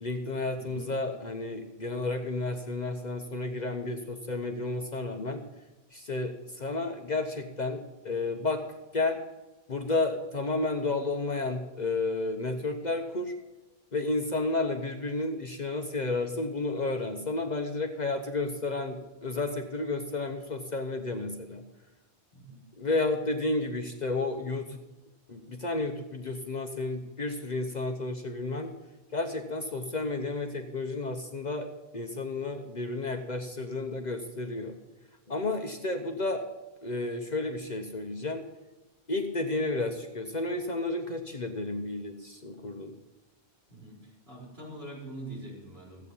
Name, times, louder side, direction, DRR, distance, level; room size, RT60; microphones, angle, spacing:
voice 1, 0.0-5.4 5.9-8.6 8.9-9.2 9.7-13.3 13.9-21.6 22.8-24.8 25.3-28.7 29.1-34.8 35.3-36.4 36.8-38.4 39.1-43.0, left 2 dB, 45° left, 5 dB, 0.9 m, -32 dB
voice 2, 0.6-0.9 22.3-22.6 43.7-46.1, right 1 dB, 60° right, -5 dB, 4.6 m, -44 dB
14.5 x 8.4 x 5.4 m, 1.1 s
omnidirectional pair, 1.2 m